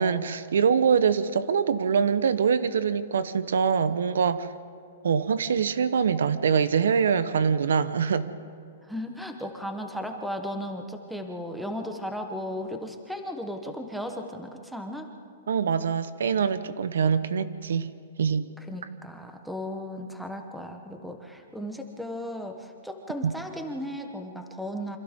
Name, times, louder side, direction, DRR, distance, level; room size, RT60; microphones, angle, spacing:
voice 1, 0.0-4.5 5.0-8.3 15.5-17.9 18.2-18.5 23.2-23.3, right 6 dB, 90° right, 13 dB, 1.0 m, -24 dB
voice 2, 8.8-15.1 18.7-25.0, equal, ahead, 4 dB, 1.0 m, -35 dB
28.5 x 25.5 x 3.7 m, 2.5 s
hypercardioid pair, 180°, 0 cm